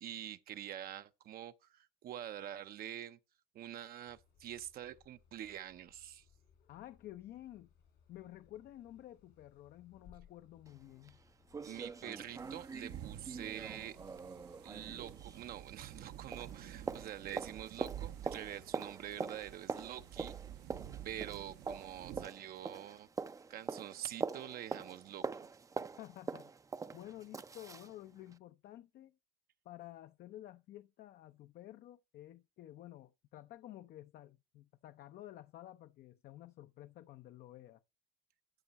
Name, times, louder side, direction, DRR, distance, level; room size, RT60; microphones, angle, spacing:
voice 1, 0.0-3.2 3.5-6.2 11.6-14.0 14.6-20.4 21.0-23.1 23.5-25.5, right 11 dB, 65° right, 0.7 m, -46 dB
sound 1, 4.1-17.3, left 7 dB, 85° left, 4.7 m, -67 dB
voice 2, 6.7-7.7 8.1-11.2 26.0-26.6 26.9-29.2 29.6-37.8, left 13 dB, 65° left, 0.6 m, -52 dB
sound 2, 10.7-10.8 11.1-11.2 11.5-16.1 16.3-27.9 28.3-28.4, right 4 dB, 20° right, 0.4 m, -44 dB
sound 3, 12.4-22.3, right 11 dB, 80° right, 1.0 m, -50 dB
13.0 x 6.1 x 4.1 m
cardioid pair, 110°, 17 cm